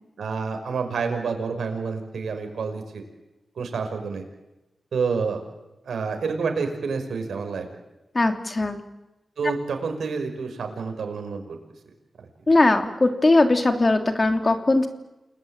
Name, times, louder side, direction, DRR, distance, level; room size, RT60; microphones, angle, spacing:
voice 1, 0.2-3.0 3.6-4.2 4.9-5.4 5.8-7.7 9.4-11.6 12.2-12.3, right 5 dB, 90° right, 5 dB, 5.4 m, -28 dB
voice 2, 8.1-8.8 12.5-14.9, left 2 dB, 30° left, 6 dB, 2.9 m, -19 dB
29.5 x 20.5 x 9.0 m, 0.99 s
wide cardioid pair, 85°, 0 cm